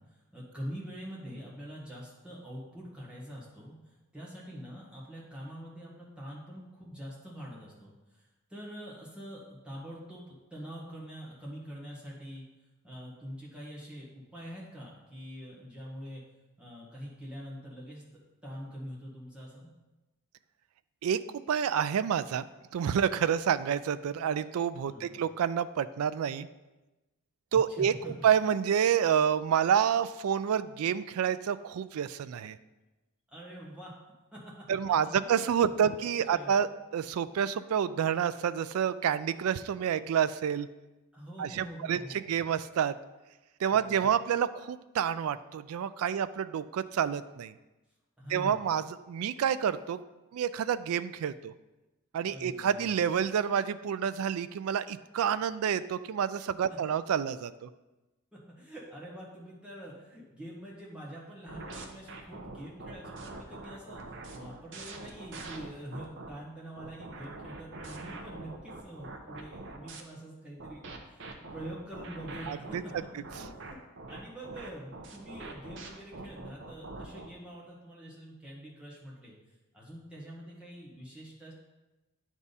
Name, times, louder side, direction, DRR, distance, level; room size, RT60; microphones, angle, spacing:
voice 1, 0.3-3.7 4.1-12.4 12.8-16.2 16.6-18.0 18.4-19.7 24.9-25.2 27.5-28.1 33.3-33.9 34.3-35.5 35.8-36.0 36.3-36.6 41.1-42.3 43.7-44.1 48.2-48.6 52.3-53.0 56.7-56.8 58.3-73.1 73.4-73.8 74.1-79.3 79.7-81.5, equal, 5° right, -6 dB, 1.6 m, -45 dB
voice 2, 21.0-22.5 22.7-26.5 27.5-27.9 28.2-32.6 34.7-40.7 41.4-42.9 43.6-47.5 48.3-50.0 50.3-51.5 52.1-57.7 72.5-72.8, right 8 dB, 80° right, 15 dB, 0.3 m, -28 dB
sound 1, 61.5-66.3 66.8-70.0 70.6-77.3, right 2 dB, 55° right, 0.7 m, -44 dB
9.7 x 3.6 x 4.1 m, 1.1 s
head